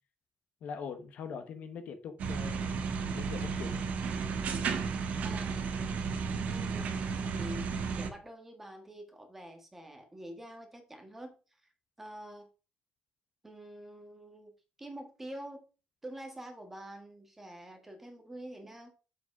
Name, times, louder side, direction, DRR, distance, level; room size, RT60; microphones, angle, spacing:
voice 1, 0.6-2.8 3.1-3.7, left 6 dB, 60° left, 1.0 m, -42 dB
sound 1, 2.2-8.1, right 5 dB, 60° right, 1.2 m, -33 dB
voice 2, 5.2-5.7 6.1-11.4 12.0-12.5 13.4-14.5 14.8-15.6 16.0-18.9, right 1 dB, 10° right, 1.4 m, -47 dB
7.2 x 5.0 x 4.7 m
cardioid pair, 175°, 3 cm